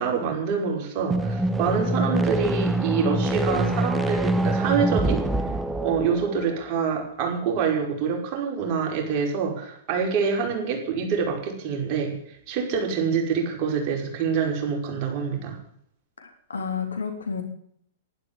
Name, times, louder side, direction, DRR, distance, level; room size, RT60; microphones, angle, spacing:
voice 1, 0.0-5.2 5.8-12.1 12.5-15.6, right 6 dB, 40° right, 1 dB, 5.3 m, -26 dB
sound 1, 1.0-6.6, right 1 dB, 5° right, 1.1 m, -25 dB
voice 2, 16.2-17.4, left 6 dB, 70° left, 6 dB, 3.4 m, -31 dB
12.0 x 11.5 x 10.0 m, 0.69 s
figure-of-eight pair, 105°, 0 cm